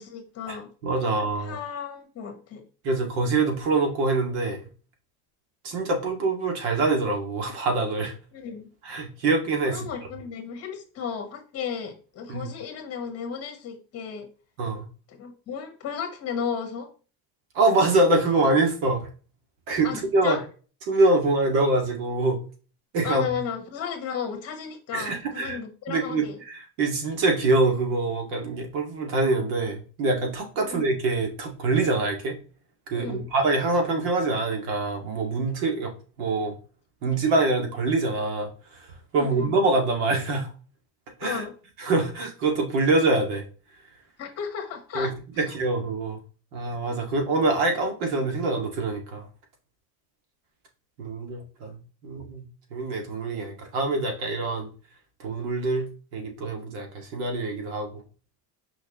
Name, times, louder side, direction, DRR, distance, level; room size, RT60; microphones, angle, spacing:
voice 1, 0.0-0.7 1.0-2.6 8.3-8.7 9.7-14.3 15.1-16.9 19.8-20.4 23.0-26.4 30.6-30.9 32.9-33.3 39.1-39.6 41.2-41.5 44.2-45.5, left 7 dB, 35° left, 5 dB, 1.4 m, -34 dB
voice 2, 0.8-1.6 2.8-4.6 5.6-8.1 8.8-9.9 12.3-12.5 14.6-14.9 17.5-19.0 19.7-20.4 20.9-22.4 22.9-23.4 24.9-25.6 25.9-32.4 32.9-35.9 36.2-36.5 37.0-38.5 39.1-40.5 41.2-41.4 41.8-43.4 44.9-45.1 45.4-46.2 46.5-49.3 51.0-52.4 52.7-54.7 55.2-55.9 56.1-58.0, right 2 dB, 80° right, 3 dB, 2.2 m, -25 dB
6.4 x 5.0 x 3.0 m, 0.36 s
cardioid pair, 180°, 43 cm